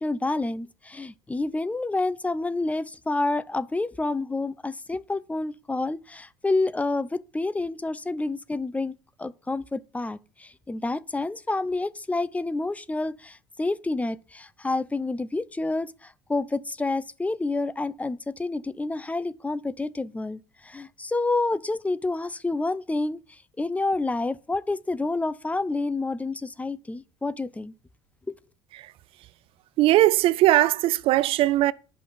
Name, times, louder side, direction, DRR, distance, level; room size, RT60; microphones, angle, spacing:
voice 1, 0.0-27.7, left 2 dB, 15° left, 0.8 m, -29 dB
voice 2, 29.8-31.7, right 16 dB, 60° right, 0.5 m, -20 dB
11.0 x 5.8 x 7.4 m
supercardioid pair, 80°, 11 cm